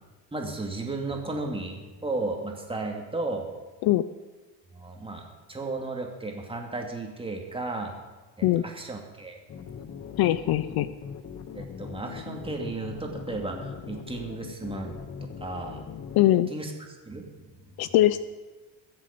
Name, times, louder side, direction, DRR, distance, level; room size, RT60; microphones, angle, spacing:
voice 1, 0.3-3.5 4.7-7.9 8.4-9.4 11.5-15.8 16.5-16.7 17.0-17.8, right 2 dB, 10° right, 1 dB, 2.6 m, -34 dB
sound 1, 9.5-16.2, left 6 dB, 35° left, 1.0 m, -40 dB
voice 2, 10.2-10.9 16.2-16.5 17.8-18.3, left 14 dB, 60° left, 14 dB, 0.6 m, -21 dB
21.5 x 7.6 x 5.2 m, 1.3 s
cardioid pair, 115°, 43 cm